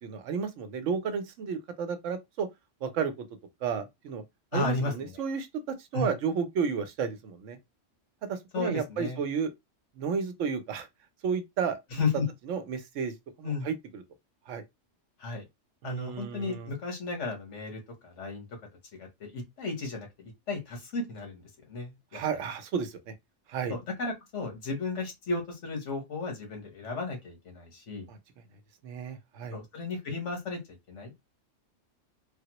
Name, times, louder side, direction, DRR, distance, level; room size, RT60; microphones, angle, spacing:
voice 1, 0.0-2.5 2.8-3.1 3.6-4.2 4.5-5.5 5.9-7.6 8.3-9.5 10.0-10.9 11.2-11.8 12.5-13.1 13.4-14.0 14.5-14.6 15.8-16.7 22.1-23.0 23.5-23.7 28.1-28.2 28.8-29.6, right 6 dB, 90° right, 1.0 m, -32 dB
voice 2, 4.5-5.1 5.9-6.1 8.5-9.2 11.9-12.3 13.4-13.7 15.2-15.4 15.8-18.4 18.9-22.2 23.7-28.1 29.5-30.6 30.9-31.1, left 3 dB, 75° left, 1.5 m, -34 dB
3.5 x 2.0 x 2.9 m
omnidirectional pair, 1.2 m